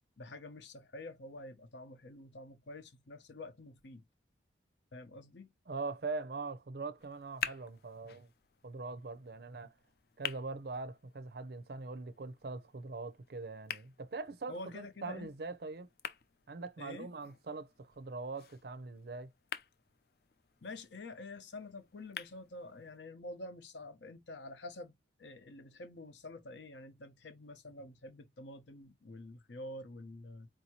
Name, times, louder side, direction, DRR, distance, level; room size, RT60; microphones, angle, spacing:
voice 1, 0.2-4.0 4.9-5.5 14.5-15.3 16.8-17.1 20.6-24.9 25.2-30.5, left 2 dB, 75° left, 0.8 m, -48 dB
voice 2, 5.7-8.3 8.6-9.7 10.2-15.9 16.5-19.3, right 3 dB, 55° right, 0.5 m, -42 dB
sound 1, 7.0-23.0, left 8 dB, 55° left, 0.4 m, -48 dB
4.5 x 2.7 x 2.9 m
head